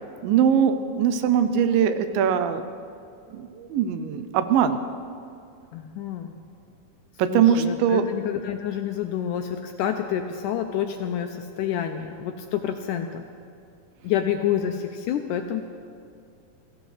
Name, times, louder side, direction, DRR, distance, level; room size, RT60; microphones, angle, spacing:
voice 1, 0.2-2.6 3.3-4.8 7.2-8.1, right 8 dB, 80° right, 10 dB, 2.4 m, -21 dB
voice 2, 5.7-6.3 7.3-13.3 14.0-15.6, left 9 dB, 80° left, 5 dB, 1.9 m, -28 dB
22.0 x 15.5 x 3.3 m, 2.4 s
omnidirectional pair, 4.1 m